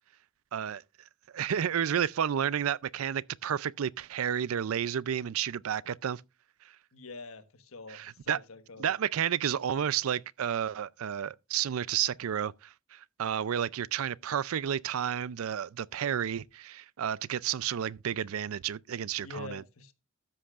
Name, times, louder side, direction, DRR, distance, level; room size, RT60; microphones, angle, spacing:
voice 1, 0.5-0.8 1.3-6.2 7.9-8.4 8.8-19.6, right 9 dB, 85° right, 0.4 m, -31 dB
voice 2, 6.9-8.9 19.2-19.9, left 3 dB, 85° left, 1.3 m, -45 dB
13.0 x 10.0 x 2.4 m
head